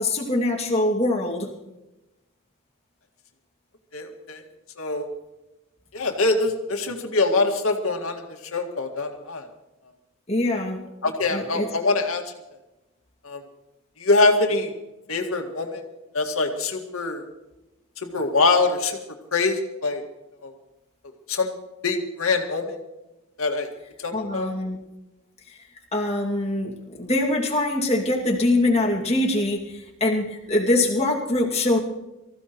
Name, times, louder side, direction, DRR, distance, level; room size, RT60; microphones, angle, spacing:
voice 1, 0.0-1.5 10.3-10.8 11.3-11.7 24.1-24.8 25.5-25.6 25.9-31.8, left 2 dB, 30° left, -1 dB, 2.3 m, -23 dB
voice 2, 3.9-4.4 4.8-5.1 5.9-8.2 8.5-9.5 11.0-12.2 13.2-13.4 14.0-14.7 15.1-15.8 16.1-17.2 18.0-19.0 19.3-20.0 20.4-20.5 21.3-21.5 21.8-22.8 23.4-23.7 24.0-24.5, left 3 dB, 85° left, 3 dB, 2.0 m, -23 dB
24.5 x 15.0 x 3.1 m, 1.0 s
head